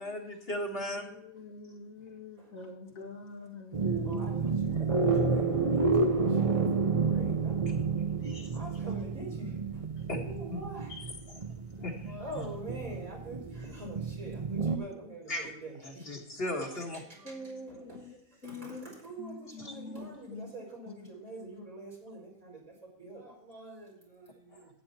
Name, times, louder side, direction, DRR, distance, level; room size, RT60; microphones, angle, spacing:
voice 1, 0.0-1.0 8.0-8.5 10.1-10.2 10.5-10.6 11.8-11.9 15.3-15.5 15.8-17.0, left 1 dB, 45° left, 2 dB, 2.0 m, -36 dB
voice 2, 0.6-4.5 10.9-11.1 17.2-18.2 18.4-18.8 19.2-20.5 20.9-21.0, left 1 dB, 75° left, -1 dB, 2.6 m, -43 dB
sound 1, 3.7-14.8, right 4 dB, 30° right, 0.7 m, -30 dB
voice 3, 4.1-7.7 8.5-9.9 10.2-10.9 12.0-16.2 16.5-24.7, right 2 dB, 80° right, -3 dB, 5.3 m, -45 dB
12.0 x 9.6 x 4.2 m, 0.77 s
omnidirectional pair, 1.4 m